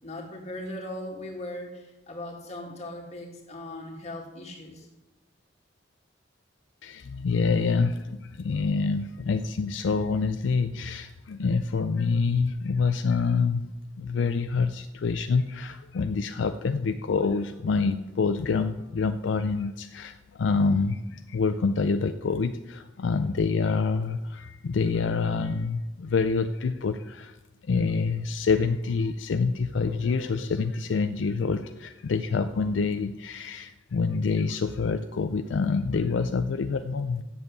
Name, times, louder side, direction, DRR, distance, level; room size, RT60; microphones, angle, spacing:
voice 1, 0.0-4.9, left 1 dB, 35° left, 0 dB, 2.0 m, -39 dB
voice 2, 6.8-13.7 14.0-27.4 27.7-37.2, left 4 dB, 75° left, 9 dB, 0.4 m, -26 dB
7.9 x 7.2 x 8.2 m, 1.1 s
head